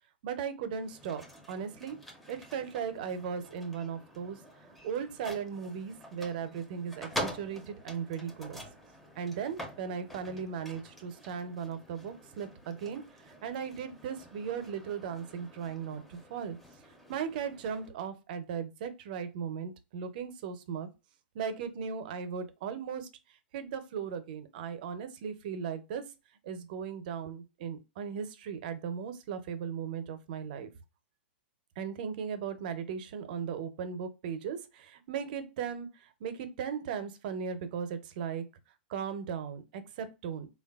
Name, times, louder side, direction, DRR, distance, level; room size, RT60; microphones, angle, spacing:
voice 1, 0.2-2.0 2.3-4.4 4.8-8.6 9.2-16.6 17.1-20.9 21.3-23.1 23.5-26.0 26.4-30.7 31.8-38.4 38.9-40.5, right 7 dB, 55° right, 10 dB, 0.5 m, -37 dB
sound 1, 0.7-17.9, equal, ahead, 0.4 m, -46 dB
3.1 x 2.2 x 2.3 m, 0.27 s
hypercardioid pair, 135°, 6 cm